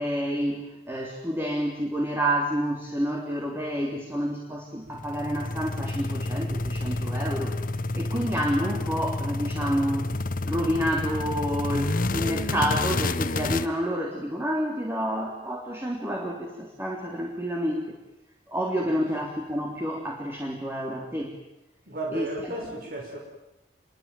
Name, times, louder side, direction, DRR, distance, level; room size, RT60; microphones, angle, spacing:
voice 1, 0.0-7.6 7.9-10.0 10.4-18.0 18.5-21.4 22.1-22.8, equal, 15° right, 0 dB, 3.6 m, -29 dB
sound 1, 4.9-13.7, left 2 dB, 50° left, 1.1 m, -29 dB
voice 2, 21.9-23.2, right 2 dB, 55° right, 0 dB, 5.4 m, -34 dB
28.0 x 23.0 x 9.3 m, 0.91 s
head